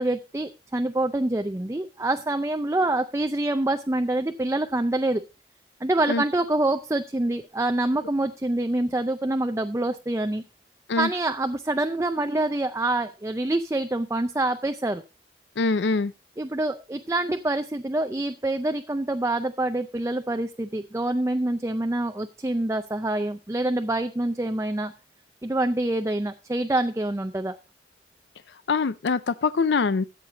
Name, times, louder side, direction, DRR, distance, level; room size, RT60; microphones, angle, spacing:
voice 1, 0.0-5.2 5.8-10.4 11.0-15.0 16.4-24.9 25.4-27.6, right 2 dB, 15° right, 0.5 m, -26 dB
voice 2, 15.6-16.1 28.5-30.0, left 4 dB, 80° left, 0.5 m, -24 dB
13.5 x 8.3 x 3.9 m
head